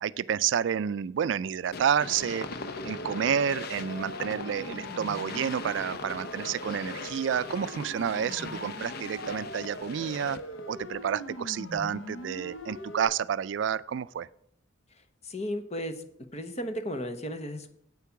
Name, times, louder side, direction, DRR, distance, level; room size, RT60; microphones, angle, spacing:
voice 1, 0.0-2.5 2.8-10.4 10.7-14.3, right 8 dB, 65° right, 18 dB, 0.3 m, -30 dB
sound 1, 1.7-10.6, left 3 dB, 55° left, 0.7 m, -40 dB
Siren, 2.7-13.1, left 1 dB, 85° left, 1.2 m, -42 dB
voice 2, 14.9-16.0 16.3-17.7, equal, 35° left, 9 dB, 1.0 m, -35 dB
8.4 x 8.2 x 5.8 m, 0.72 s
head